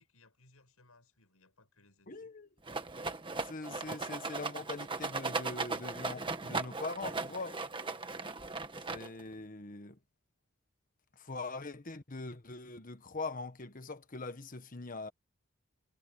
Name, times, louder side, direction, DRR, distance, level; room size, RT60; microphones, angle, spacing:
voice 1, 0.0-2.3, left 2 dB, 80° left, 6.6 m, -65 dB
voice 2, 2.1-2.5 3.4-7.6 8.9-10.0 11.2-15.1, left 3 dB, 40° left, 1.3 m, -42 dB
Rattle, 2.7-9.3, right 3 dB, 25° right, 1.5 m, -38 dB
head